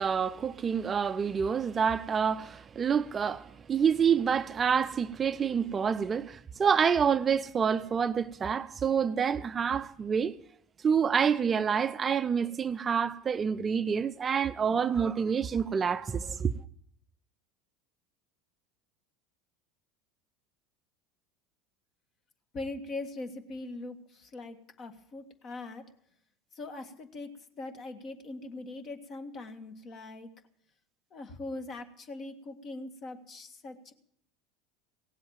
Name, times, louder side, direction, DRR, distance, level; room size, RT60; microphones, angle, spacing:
voice 1, 0.0-10.4 10.8-16.5, right 7 dB, 30° right, 0.5 m, -27 dB
voice 2, 22.5-25.8 26.5-30.3 31.1-33.9, left 2 dB, 45° left, 1.8 m, -41 dB
17.5 x 7.8 x 9.2 m
hypercardioid pair, 80°, 0 cm